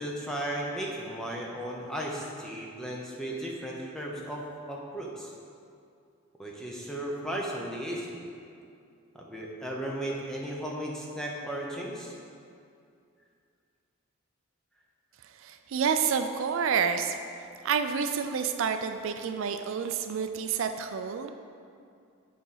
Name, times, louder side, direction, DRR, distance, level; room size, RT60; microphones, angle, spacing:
voice 1, 0.0-5.3 6.4-8.2 9.1-12.1, right 1 dB, 5° left, -3 dB, 0.8 m, -35 dB
voice 2, 15.4-17.1 17.6-21.3, right 6 dB, 65° right, 7 dB, 0.4 m, -29 dB
6.9 x 5.0 x 5.6 m, 2.4 s
head